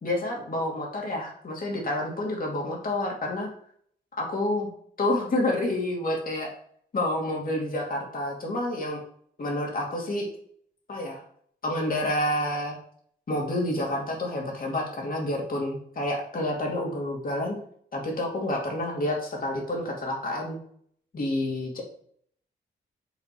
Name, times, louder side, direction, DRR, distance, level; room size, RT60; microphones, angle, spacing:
voice 1, 0.0-3.5 4.2-4.7 5.0-6.5 6.9-9.0 9.4-10.3 10.9-11.2 11.6-12.8 13.3-17.6 17.9-20.6 21.1-21.8, left 1 dB, 50° left, -1 dB, 2.8 m, -29 dB
8.2 x 4.2 x 4.5 m, 0.62 s
cardioid pair, 80°, 18 cm